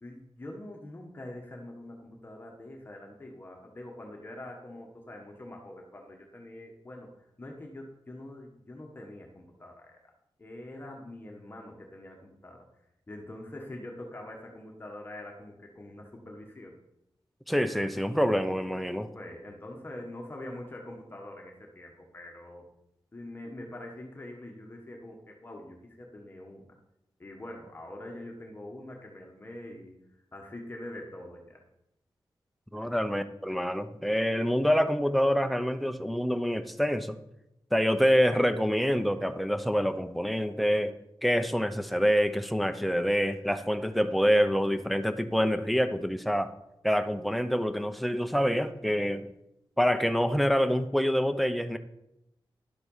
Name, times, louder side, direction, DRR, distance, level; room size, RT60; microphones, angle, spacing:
voice 1, 0.0-7.1 7.4-10.0 10.4-12.7 13.1-16.8 19.1-22.6 23.1-26.7 27.2-30.0 30.3-31.6 32.8-33.0, left 1 dB, 25° left, 0 dB, 1.5 m, -44 dB
voice 2, 17.5-19.1 32.7-37.2 37.7-40.9 41.2-46.5 46.8-49.3 49.8-51.8, equal, ahead, 9 dB, 0.7 m, -26 dB
11.5 x 7.9 x 5.6 m, 0.84 s
wide cardioid pair, 145°, 9 cm